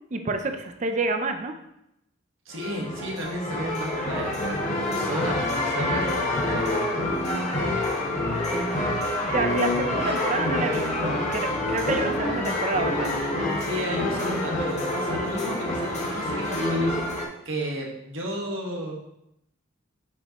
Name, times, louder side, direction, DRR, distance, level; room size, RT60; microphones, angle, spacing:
voice 1, 0.1-1.5 8.2-8.4 9.2-13.3, right 3 dB, 35° right, 6 dB, 0.5 m, -28 dB
voice 2, 2.4-6.6 13.4-17.0 17.4-18.9, right 1 dB, 65° right, -1 dB, 1.5 m, -33 dB
sound 1, 2.5-17.2, left 1 dB, 35° left, 1.1 m, -27 dB
7.4 x 5.3 x 3.0 m, 0.82 s
head